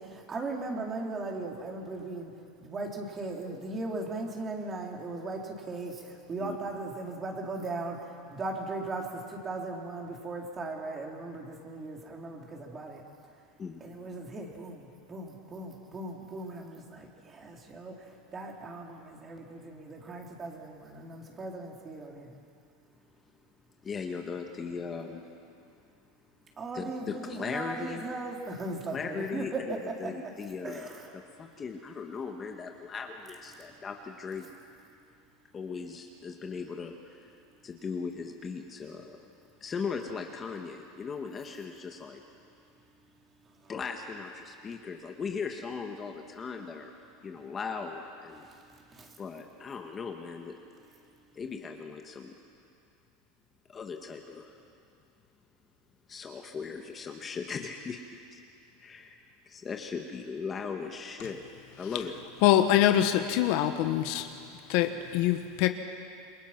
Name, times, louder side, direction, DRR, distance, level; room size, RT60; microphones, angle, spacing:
voice 1, 0.0-2.3 2.6-13.0 13.8-22.4 26.6-29.6 30.0-30.3 30.6-31.0 43.6-43.7 48.5-48.6 48.9-49.1, right 2 dB, 25° right, 0 dB, 3.9 m, -38 dB
voice 2, 23.8-25.2 26.7-28.0 28.9-30.9 31.1-34.5 35.5-37.3 37.6-39.2 39.6-42.2 43.7-46.9 47.2-48.5 49.2-50.6 51.3-52.3 53.7-54.5 56.1-58.0 58.3-58.4 58.8-59.2 59.5-61.4 61.8-62.1, left 5 dB, 25° left, 3 dB, 1.6 m, -38 dB
voice 3, 62.4-64.3 64.7-65.7, left 12 dB, 60° left, 8 dB, 1.3 m, -24 dB
28.0 x 22.5 x 6.1 m, 2.4 s
supercardioid pair, 130°, 0 cm